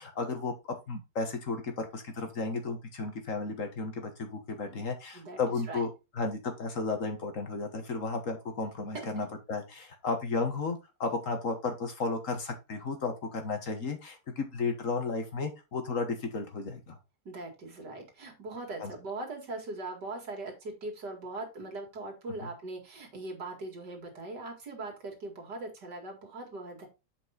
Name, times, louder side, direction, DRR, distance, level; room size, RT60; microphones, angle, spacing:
voice 1, 0.0-17.0 18.8-18.9, left 3 dB, 50° left, 6 dB, 1.6 m, -34 dB
voice 2, 17.2-26.9, right 2 dB, 75° right, 2 dB, 2.8 m, -40 dB
7.5 x 5.4 x 4.0 m, 0.26 s
omnidirectional pair, 1.8 m